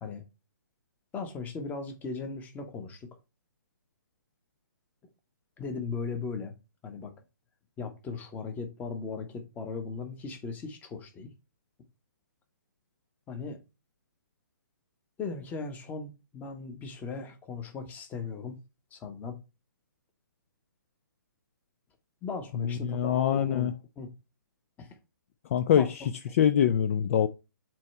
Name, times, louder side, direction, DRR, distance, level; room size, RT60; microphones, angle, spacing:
voice 1, 1.1-3.1 5.6-6.5 6.8-7.1 7.8-11.3 13.3-13.6 15.2-18.6 18.9-19.4 22.2-24.1 24.8-24.9 25.7-25.9 26.3-26.4, left 4 dB, 15° left, 1.1 m, -37 dB
voice 2, 22.6-23.7 25.5-25.9 26.3-27.3, left 9 dB, 40° left, 0.4 m, -24 dB
7.4 x 3.1 x 4.4 m
figure-of-eight pair, 135°, 11 cm